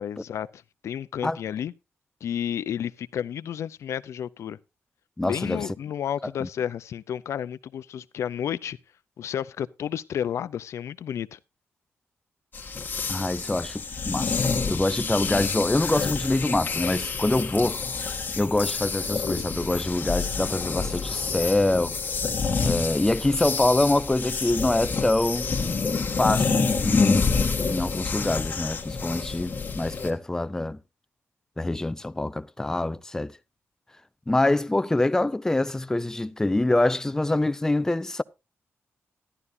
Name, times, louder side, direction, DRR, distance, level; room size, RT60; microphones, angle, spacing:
voice 1, 0.0-1.7 2.2-4.6 5.2-8.8 9.2-11.4, left 9 dB, 85° left, 0.5 m, -31 dB
voice 2, 5.2-5.6 6.4-6.5 13.1-17.8 18.3-22.0 22.6-25.5 26.2-30.8 31.6-33.3 34.3-38.2, left 2 dB, 10° left, 0.5 m, -25 dB
sound 1, 12.5-30.1, left 4 dB, 40° left, 1.6 m, -28 dB
14.0 x 11.0 x 2.6 m
wide cardioid pair, 115°, 5 cm